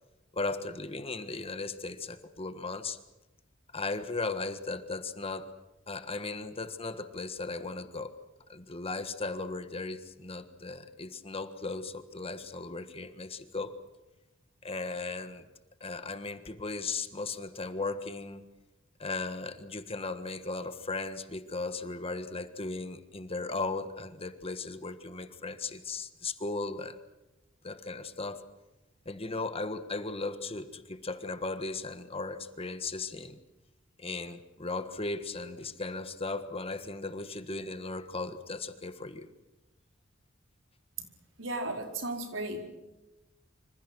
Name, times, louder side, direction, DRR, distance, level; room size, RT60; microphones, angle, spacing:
voice 1, 0.3-3.0 3.7-5.5 5.9-8.1 8.5-13.7 14.6-15.5 15.8-18.4 19.0-27.0 27.6-28.4 29.0-33.4 34.0-39.3, left 3 dB, 30° left, 10 dB, 1.5 m, -37 dB
voice 2, 41.4-42.6, right 2 dB, 75° right, 3 dB, 4.7 m, -35 dB
26.5 x 26.0 x 6.3 m, 1.0 s
head